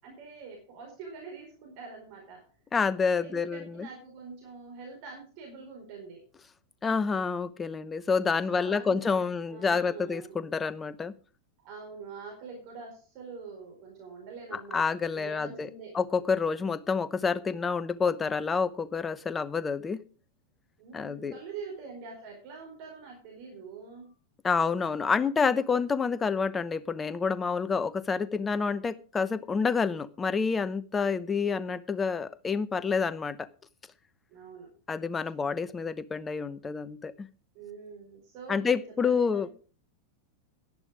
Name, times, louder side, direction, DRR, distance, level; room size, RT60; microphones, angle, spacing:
voice 1, 0.0-2.4 3.1-6.2 8.5-10.4 11.6-14.9 15.1-16.0 20.8-24.1 34.3-34.7 37.5-39.5, right 5 dB, 45° right, 0 dB, 4.5 m, -45 dB
voice 2, 2.7-3.9 6.8-11.1 14.5-15.7 15.9-20.0 20.9-21.3 24.4-33.4 34.9-37.3 38.5-39.5, left 5 dB, 15° left, 15 dB, 0.8 m, -28 dB
11.5 x 11.0 x 5.0 m, 0.38 s
figure-of-eight pair, 90°, 0 cm